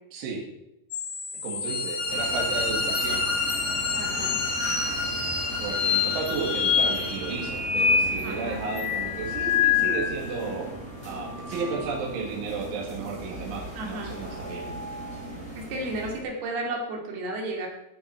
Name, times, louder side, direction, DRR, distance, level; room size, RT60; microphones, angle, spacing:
voice 1, 0.1-0.4 1.4-3.3 4.0-4.4 5.6-10.7 11.0-14.7, right 4 dB, 85° right, -2 dB, 4.6 m, -33 dB
sound 1, 0.9-10.5 10.9-12.3 14.1-15.3, left 7 dB, 60° left, 4.2 m, -29 dB
sound 2, 1.7-7.5, left 3 dB, 15° left, 2.2 m, -30 dB
sound 3, 2.1-16.2, right 1 dB, 5° right, 2.4 m, -38 dB
voice 2, 4.0-4.4 8.2-8.6 13.8-14.2 15.6-17.7, right 2 dB, 60° right, 0 dB, 4.2 m, -33 dB
13.5 x 8.3 x 5.9 m, 0.87 s
omnidirectional pair, 5.3 m